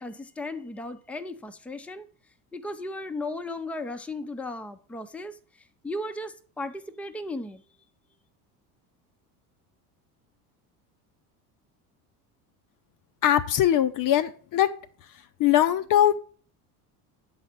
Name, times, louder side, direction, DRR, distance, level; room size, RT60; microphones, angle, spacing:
voice 1, 0.0-2.1 2.5-5.4 5.8-7.6, left 2 dB, 5° left, 0.6 m, -35 dB
voice 2, 13.2-14.7 15.4-16.2, left 11 dB, 45° left, 0.6 m, -21 dB
7.8 x 4.1 x 5.9 m
hypercardioid pair, 80°, 46 cm